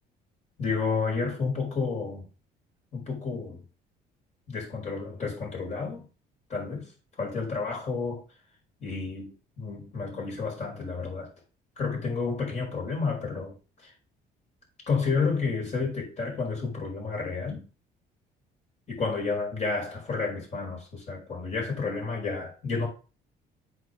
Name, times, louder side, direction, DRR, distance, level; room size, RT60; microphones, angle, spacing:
voice 1, 0.6-2.3 2.9-3.6 4.5-6.0 6.5-6.9 7.2-8.2 8.8-11.3 11.8-13.5 13.8-13.9 14.9-17.6 18.9-22.9, left 4 dB, 45° left, 5.3 m, -30 dB
8.0 x 4.1 x 6.6 m
cardioid pair, 110°, 17 cm